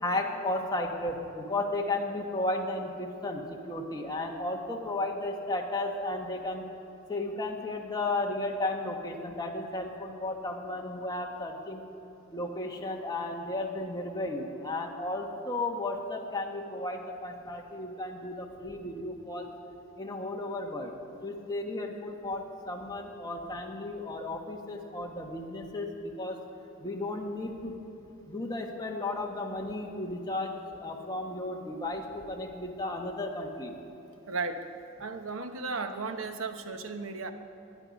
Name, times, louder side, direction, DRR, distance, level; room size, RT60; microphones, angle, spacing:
voice 1, 0.0-6.7 7.1-11.9 12.3-19.5 20.0-20.9 21.2-26.4 26.8-27.8 28.3-33.7, left 2 dB, 20° left, 1 dB, 1.4 m, -34 dB
voice 2, 34.3-34.7 35.0-37.3, right 4 dB, 80° right, 7 dB, 1.0 m, -35 dB
20.5 x 10.5 x 5.3 m, 2.8 s
head